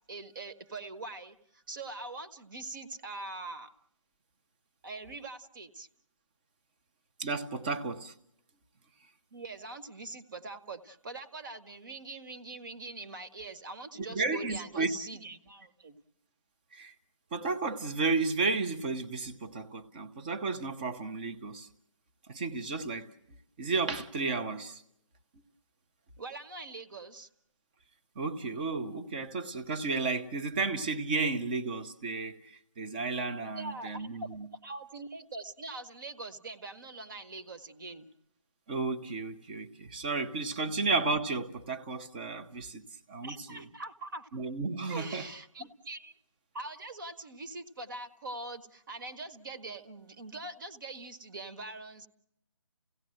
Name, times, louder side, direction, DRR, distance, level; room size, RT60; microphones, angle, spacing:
voice 1, 0.1-3.7 4.8-5.9 9.3-16.0 26.2-27.3 33.6-34.3 34.6-38.1 43.2-44.3 44.9-46.1 46.5-52.1, right 2 dB, 40° right, 1.4 m, -43 dB
voice 2, 7.2-8.1 14.0-14.9 16.7-16.9 17.3-21.7 22.3-23.1 23.6-24.8 28.2-34.5 38.7-43.6 44.3-45.3, right 3 dB, 15° right, 0.8 m, -33 dB
29.5 x 17.0 x 7.8 m
figure-of-eight pair, 160°, 17 cm